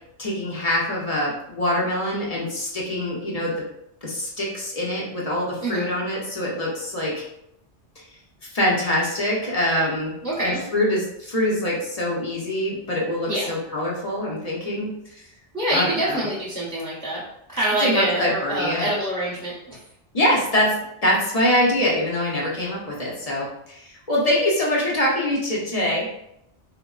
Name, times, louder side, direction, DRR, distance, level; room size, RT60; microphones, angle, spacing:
voice 1, 0.2-3.5 4.0-7.2 8.0-8.1 8.4-15.2 15.7-16.3 17.8-18.9 20.1-26.1, left 1 dB, 45° left, -4 dB, 0.5 m, -24 dB
voice 2, 10.2-10.6 13.3-13.5 15.5-17.2 17.5-19.8, right 1 dB, 20° right, -8 dB, 0.7 m, -25 dB
3.5 x 2.1 x 2.3 m, 0.79 s
omnidirectional pair, 1.2 m